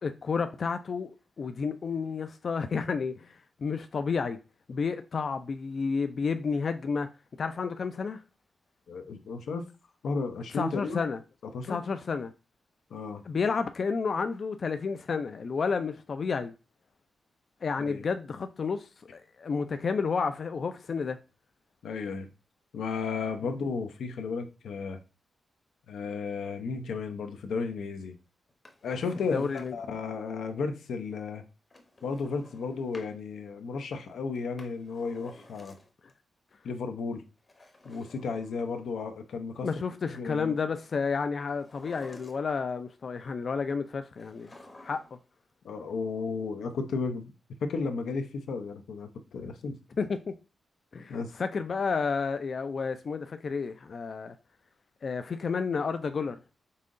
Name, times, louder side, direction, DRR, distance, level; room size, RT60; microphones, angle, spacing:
voice 1, 0.0-4.4 4.7-7.1 7.4-8.2 10.5-11.2 11.7-12.3 13.3-16.5 17.6-21.2 29.3-29.7 39.6-44.5 44.8-45.2 50.0-50.4 50.9-54.3 55.0-56.4, left 5 dB, 45° left, 0.3 m, -31 dB
voice 2, 8.9-9.6 10.0-11.0 11.5-11.8 12.9-13.2 17.8-18.0 21.8-22.3 22.7-25.0 25.9-28.2 28.8-31.4 32.0-35.8 36.6-37.2 37.8-39.7 40.1-40.5 45.6-47.3 47.6-49.7 51.1-51.3, left 4 dB, 90° left, 0.6 m, -34 dB
Drawer open or close, 28.5-30.0 31.7-33.2 34.3-36.1 37.4-39.0 41.5-42.7 44.1-45.3 45.5-45.6, left 2 dB, 25° left, 0.7 m, -53 dB
5.5 x 3.7 x 2.5 m
wide cardioid pair, 170°, 0 cm